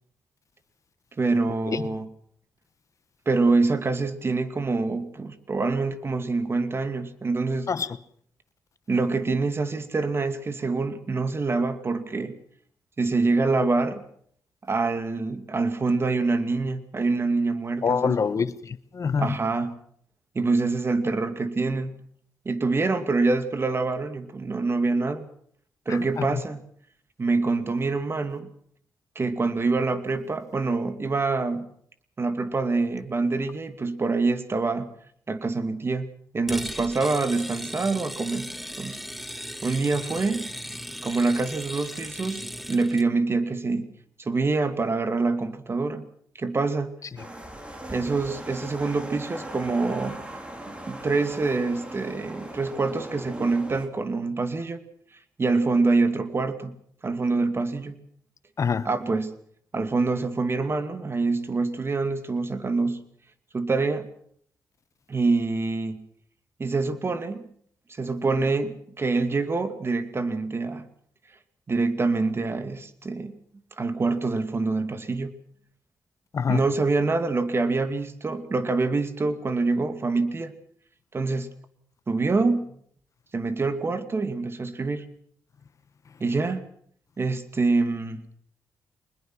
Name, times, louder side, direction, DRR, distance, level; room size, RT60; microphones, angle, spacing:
voice 1, 1.2-2.1 3.3-7.7 8.9-12.4 13.0-14.0 14.7-18.5 19.2-19.8 20.3-21.9 22.4-25.2 25.9-26.6 27.2-28.5 29.2-31.7 32.2-34.9 35.3-36.1 36.3-38.5 38.8-39.0 39.6-40.5 41.0-43.9 44.2-46.0 46.4-46.9 47.9-50.2 50.7-54.8 55.4-56.8 57.0-58.0 58.8-59.3 59.7-63.0 63.5-64.1 65.1-66.0 66.6-67.5 68.0-70.9 71.7-73.4 73.8-75.3 76.5-80.5 81.1-81.5 82.1-82.8 83.3-85.0 86.2-86.6 87.2-88.2, right 3 dB, 35° right, 2.5 m, -25 dB
voice 2, 17.8-19.4 26.2-26.3 58.6-58.9 76.3-76.6, left 6 dB, 50° left, 1.1 m, -25 dB
sound 1, 36.5-43.1, equal, ahead, 1.2 m, -37 dB
sound 2, 47.2-53.9, right 1 dB, 15° right, 4.4 m, -39 dB
24.0 x 20.5 x 6.2 m
cardioid pair, 85°, 7 cm